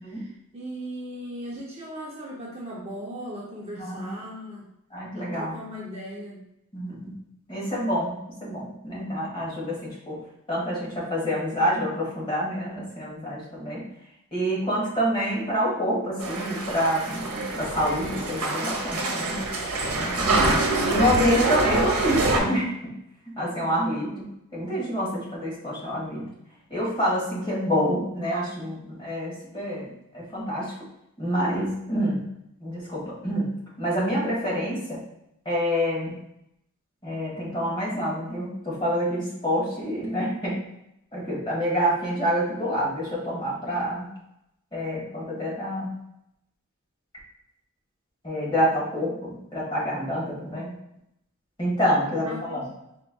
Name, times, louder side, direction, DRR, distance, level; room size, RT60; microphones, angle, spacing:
voice 1, 0.0-4.7 5.3-6.4 52.2-52.7, equal, 30° right, -5 dB, 0.7 m, -38 dB
voice 2, 3.7-4.1 4.9-5.5 6.7-7.1 7.5-10.2 10.5-13.8 14.3-19.4 19.9-20.6 20.8-22.7 23.4-26.3 26.7-30.8 31.2-32.2 32.6-35.0 35.4-36.2 37.0-40.6 41.1-44.1 44.7-46.0 48.2-50.7 51.6-52.6, equal, 20° left, -6 dB, 1.5 m, -27 dB
sound 1, 16.2-22.4, right 2 dB, 85° right, 0.8 m, -25 dB
4.3 x 4.0 x 2.3 m, 0.81 s
head